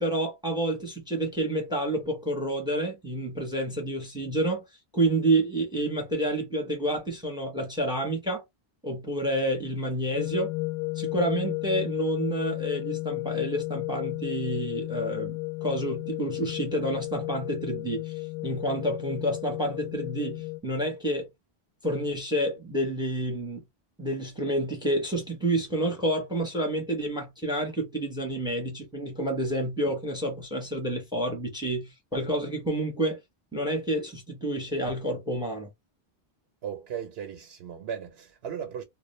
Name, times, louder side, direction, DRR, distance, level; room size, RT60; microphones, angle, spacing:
voice 1, 0.0-4.6 4.9-8.4 8.8-10.5 10.9-15.3 15.6-18.1 18.4-21.3 21.8-23.6 24.0-33.2 33.5-35.7, right 1 dB, 5° right, 0.6 m, -29 dB
sound 1, 10.2-20.6, left 24 dB, 75° left, 0.8 m, -33 dB
voice 2, 36.6-38.8, right 8 dB, 90° right, 0.9 m, -36 dB
2.3 x 2.1 x 3.0 m
omnidirectional pair, 1.0 m